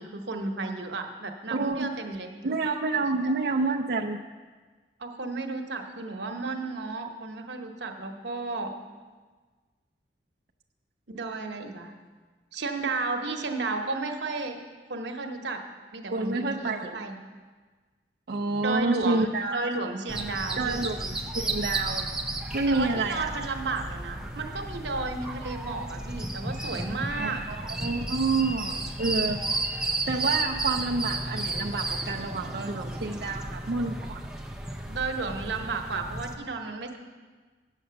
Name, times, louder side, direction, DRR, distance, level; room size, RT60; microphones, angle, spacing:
voice 1, 0.0-2.3 3.2-3.3 5.0-8.7 11.1-11.9 12.5-14.6 14.9-15.6 15.9-17.2 18.6-20.9 22.7-27.4 34.9-37.0, right 3 dB, 90° right, 4 dB, 1.0 m, -33 dB
voice 2, 1.5-1.9 2.4-4.2 16.1-17.0 18.3-19.6 20.6-22.1 22.5-23.3 27.1-27.3 27.8-29.4 30.1-34.2, right 3 dB, 60° right, 0 dB, 0.5 m, -28 dB
sound 1, 20.1-36.3, right 2 dB, 5° right, 0.6 m, -33 dB
8.1 x 7.6 x 6.9 m, 1.4 s
head